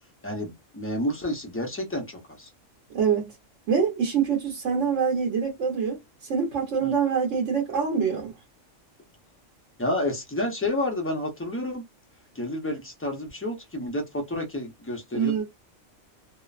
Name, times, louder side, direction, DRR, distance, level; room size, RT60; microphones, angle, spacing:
voice 1, 0.2-2.5 6.8-6.9 9.8-11.8 12.3-15.4, left 1 dB, 20° left, 0.3 m, -30 dB
voice 2, 2.9-3.3 3.7-6.0 6.3-8.3 15.1-15.4, right 6 dB, 65° right, 1.1 m, -25 dB
2.8 x 2.1 x 2.4 m
omnidirectional pair, 1.4 m